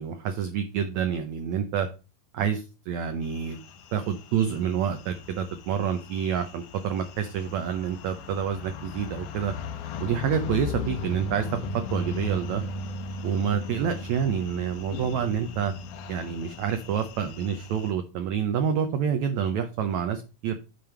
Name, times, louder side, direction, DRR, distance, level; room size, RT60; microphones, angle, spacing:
voice 1, 0.0-1.9 2.3-3.6 3.9-9.5 10.0-11.5 11.7-12.6 13.2-15.7 16.1-20.6, right 8 dB, 80° right, 7 dB, 1.6 m, -28 dB
sound 1, 3.3-17.9, left 2 dB, 70° left, 2.1 m, -37 dB
9.2 x 3.4 x 5.8 m, 0.31 s
omnidirectional pair, 4.1 m